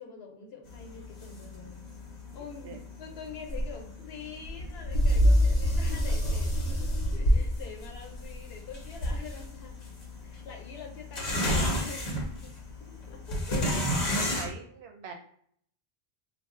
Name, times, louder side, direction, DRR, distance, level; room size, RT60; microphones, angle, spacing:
voice 1, 0.0-1.8 2.3-9.9 10.2-14.0, left 6 dB, 80° left, 2 dB, 0.9 m, -45 dB
sound 1, 0.7-14.5, equal, 50° left, 0.7 m, -29 dB
voice 2, 13.9-15.1, right 5 dB, 90° right, 4 dB, 0.9 m, -43 dB
2.6 x 2.0 x 3.5 m, 0.64 s
omnidirectional pair, 1.1 m